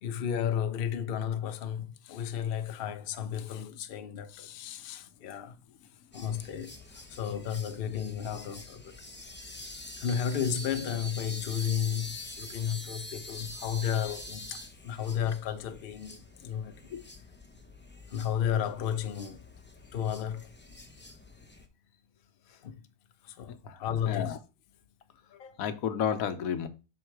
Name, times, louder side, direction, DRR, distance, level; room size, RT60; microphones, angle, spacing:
voice 1, 0.0-5.6 6.1-9.0 10.0-16.9 18.1-19.4 19.9-20.5 22.6-22.8 23.2-24.4, left 8 dB, 55° left, 0.7 m, -33 dB
sound 1, 6.1-21.7, left 1 dB, 15° left, 0.4 m, -46 dB
voice 2, 24.1-24.4 25.4-26.7, left 8 dB, 85° left, 1.2 m, -32 dB
6.4 x 3.8 x 4.6 m
omnidirectional pair, 1.4 m